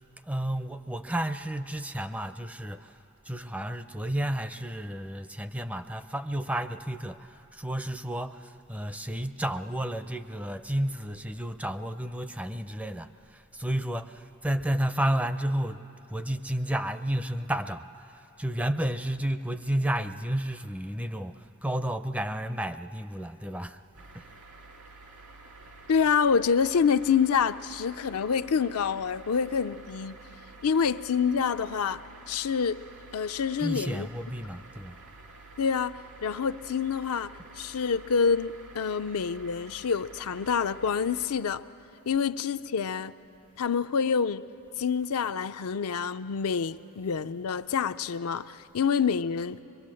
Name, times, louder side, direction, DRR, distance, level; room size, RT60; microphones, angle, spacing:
voice 1, 0.3-3.0 3.3-15.8 16.1-23.8 24.1-24.3 33.6-35.0, right 1 dB, 5° right, 0.4 m, -32 dB
sound 1, 23.9-41.3, right 3 dB, 75° right, 2.2 m, -50 dB
voice 2, 25.9-30.2 30.6-32.0 32.3-32.8 33.1-34.1 35.6-41.6 42.1-43.1 43.6-44.4 44.8-49.6, left 6 dB, 75° left, 0.5 m, -27 dB
23.5 x 22.0 x 7.6 m
head